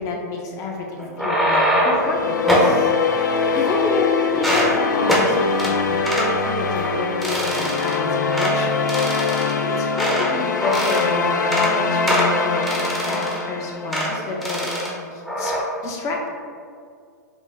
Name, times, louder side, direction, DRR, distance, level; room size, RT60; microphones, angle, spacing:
voice 1, 0.0-2.9 3.5-8.7 9.8-15.5 15.8-16.3, left 2 dB, 35° left, 0 dB, 0.8 m, -29 dB
sound 1, 1.0-2.1 2.5-2.7 3.4-4.0 4.3-4.7 5.1-5.3 5.6-5.7 6.1-6.3 6.7-6.9 7.2-8.0 8.3-8.5 8.9-10.3 10.6-11.1 11.4-11.7 12.1-13.5 13.9-14.1 14.4-14.9 15.3-15.6, equal, ahead, 0.7 m, -23 dB
sound 2, 1.8-14.2, left 5 dB, 85° left, 0.4 m, -23 dB
5.2 x 2.2 x 3.4 m, 2.2 s
hypercardioid pair, 110°, 10 cm